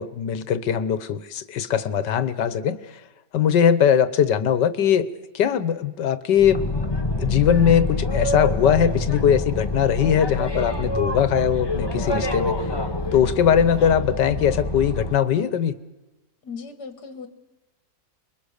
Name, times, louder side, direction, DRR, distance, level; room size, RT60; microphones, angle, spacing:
voice 1, 0.0-2.8 3.3-5.1 5.3-6.6 7.2-12.5 13.1-15.7, left 8 dB, 90° left, 14 dB, 1.7 m, -20 dB
Boat Water vehicle, 6.4-15.2, left 1 dB, 15° left, 1.5 m, -26 dB
voice 2, 16.4-17.3, left 5 dB, 70° left, 9 dB, 2.1 m, -37 dB
28.0 x 22.0 x 6.6 m, 1.1 s
omnidirectional pair, 1.8 m